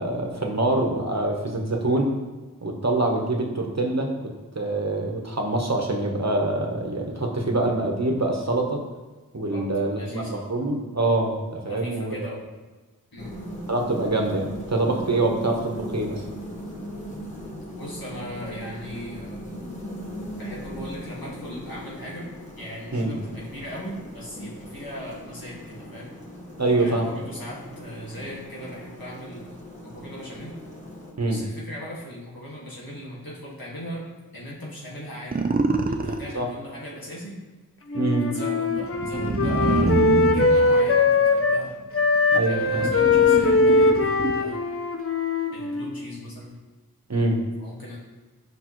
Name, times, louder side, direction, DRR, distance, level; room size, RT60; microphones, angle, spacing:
voice 1, 0.0-2.1 2.6-8.8 9.3-12.4 13.7-16.2 22.9-23.1 26.6-27.1 31.2-31.4 36.3-36.5 37.9-38.3 42.3-42.9 47.1-47.4, right 2 dB, 50° right, 1 dB, 1.1 m, -25 dB
voice 2, 9.5-10.4 11.7-12.4 13.1-13.3 17.7-19.4 20.3-22.3 22.6-26.1 26.8-30.5 31.3-34.0 34.3-35.4 35.9-37.4 38.2-41.7 42.5-44.6 45.5-46.5 47.6-48.0, equal, 80° left, -6 dB, 1.9 m, -38 dB
sound 1, 13.2-31.1, equal, 20° left, 1.7 m, -39 dB
sound 2, 35.3-36.3 38.7-41.5 42.2-44.6, right 3 dB, 25° right, 0.6 m, -26 dB
Wind instrument woodwind instrument, 37.9-41.6 41.9-46.0, left 3 dB, 40° left, 0.7 m, -21 dB
8.2 x 5.4 x 3.1 m, 1.3 s
wide cardioid pair, 40°, 35 cm